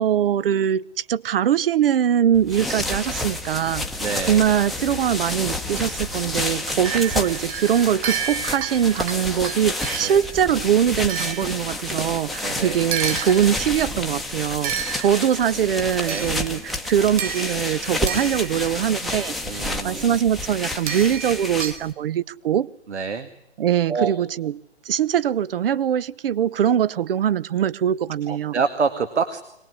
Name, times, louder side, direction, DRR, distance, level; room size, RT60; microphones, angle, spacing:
voice 1, 0.0-3.9 4.3-22.7 23.6-24.6 24.9-28.5, right 9 dB, 55° right, 0.9 m, -22 dB
sound 1, 2.3-21.9, left 2 dB, ahead, 1.0 m, -30 dB
voice 2, 4.0-4.4 10.0-10.2 12.4-12.8 16.1-16.3 19.4-20.1 22.9-23.3 23.9-24.1 28.3-29.4, right 5 dB, 75° right, 2.2 m, -26 dB
sound 2, 6.8-10.3 11.1-12.2 12.9-13.8 14.6-15.5 16.1-16.7 17.2-18.8 20.9-21.8, right 8 dB, 30° right, 2.1 m, -31 dB
23.5 x 19.5 x 9.7 m
hypercardioid pair, 145°, 34 cm